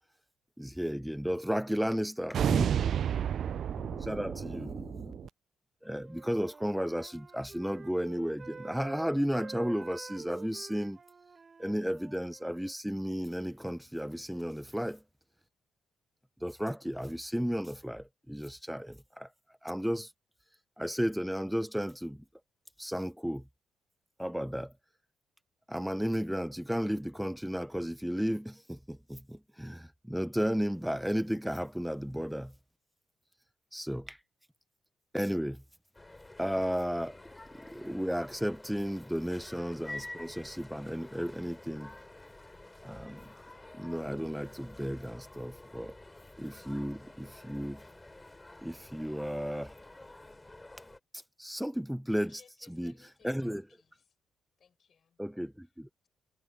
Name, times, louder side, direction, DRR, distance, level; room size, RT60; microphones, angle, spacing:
voice 1, 0.6-2.7 3.8-5.1 5.8-11.0 11.6-15.0 16.4-19.3 19.6-20.1 20.8-22.2 22.8-23.4 24.2-24.7 25.7-32.5 33.7-34.2 35.1-35.6 36.4-37.2 37.7-41.9 42.8-43.3 43.7-46.0 46.4-47.8 48.6-49.7 51.1-52.4 52.7-52.9 53.2-53.6 55.2-55.9, equal, ahead, 0.5 m, -34 dB
voice 2, 2.3-5.3, right 9 dB, 60° right, 0.3 m, -31 dB
Wind instrument woodwind instrument, 5.9-12.7, right 4 dB, 35° right, 5.9 m, -48 dB
sound 1, 35.9-51.0, left 2 dB, 15° left, 5.8 m, -50 dB
voice 3, 52.2-54.2 54.6-55.2, left 7 dB, 50° left, 7.4 m, -64 dB
cardioid pair, 90°, 0 cm